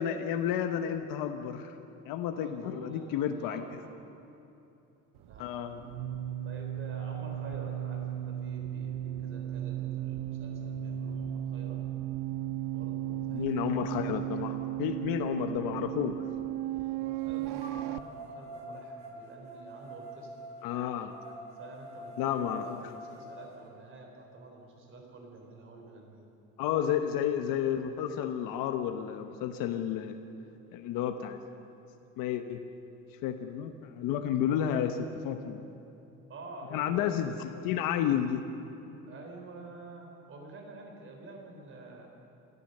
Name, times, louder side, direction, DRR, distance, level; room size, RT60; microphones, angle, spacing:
voice 1, 0.0-1.7 2.0-3.6 5.4-5.8 13.3-16.2 20.6-21.2 22.2-22.6 26.6-30.2 30.7-31.4 32.2-32.6 33.2-35.7 36.7-38.4, left 9 dB, 85° left, 6 dB, 1.1 m, -31 dB
voice 2, 2.3-3.9 5.2-5.6 6.4-11.8 12.7-14.1 16.9-20.5 21.5-26.3 36.3-37.3 39.1-42.1, right 3 dB, 40° right, 1 dB, 3.8 m, -48 dB
sound 1, 5.2-18.0, right 12 dB, 75° right, 0.8 m, -35 dB
sound 2, 13.8-13.9 14.4-16.3 17.6-23.6, equal, 20° right, 4.0 m, -47 dB
28.0 x 14.0 x 6.6 m, 2.8 s
cardioid pair, 150°, 33 cm